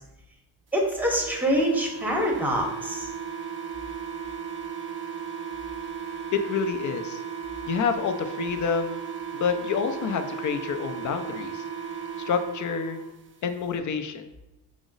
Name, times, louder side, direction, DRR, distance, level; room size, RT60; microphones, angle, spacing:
voice 1, 0.7-3.1, equal, 5° right, 0 dB, 0.8 m, -25 dB
sound 1, 1.0-13.1, right 7 dB, 30° right, 0.4 m, -36 dB
voice 2, 6.3-7.2 7.7-9.0 9.3-11.6 12.3-13.0 13.4-14.2, left 6 dB, 45° left, 8 dB, 0.4 m, -28 dB
4.9 x 2.0 x 3.8 m, 0.93 s
cardioid pair, 100°, 44 cm